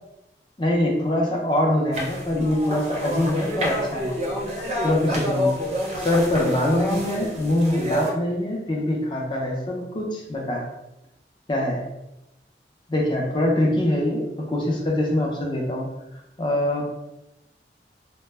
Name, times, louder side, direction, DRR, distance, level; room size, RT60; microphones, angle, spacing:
voice 1, 0.6-4.1 4.8-5.5 6.0-10.6 11.5-11.8 12.9-15.9 16.4-16.9, left 1 dB, 25° left, -1 dB, 0.5 m, -23 dB
sound 1, 1.9-8.1, left 1 dB, 35° right, 0.5 m, -28 dB
2.1 x 2.0 x 3.2 m, 0.91 s
head